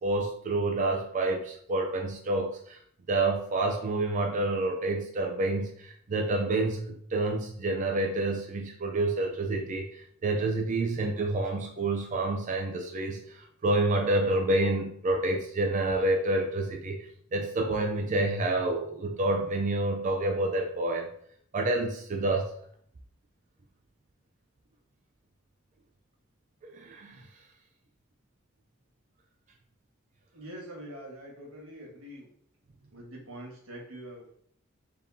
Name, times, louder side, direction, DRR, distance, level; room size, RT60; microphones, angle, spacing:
voice 1, 0.0-2.8 3.1-21.1 21.5-22.5 26.7-27.2, right 2 dB, 35° right, 2 dB, 0.4 m, -28 dB
voice 2, 30.3-32.3 32.9-34.3, right 1 dB, 90° right, -3 dB, 1.4 m, -44 dB
4.3 x 3.5 x 2.7 m, 0.66 s
head